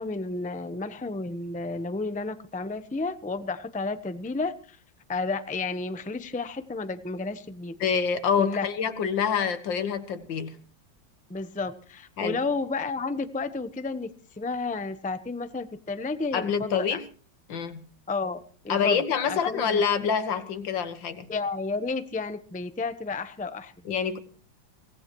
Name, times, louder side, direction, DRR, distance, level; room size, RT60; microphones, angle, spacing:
voice 1, 0.0-4.8 5.1-7.7 8.4-8.7 11.3-17.0 18.1-18.4 18.6-19.8 21.3-23.7, left 3 dB, 5° left, 10 dB, 0.6 m, -32 dB
voice 2, 7.8-10.6 12.2-12.4 16.3-17.0 17.5-17.8 18.7-21.3 23.9-24.2, left 7 dB, 80° left, 9 dB, 2.1 m, -26 dB
24.0 x 18.5 x 3.1 m, 0.42 s
omnidirectional pair, 2.0 m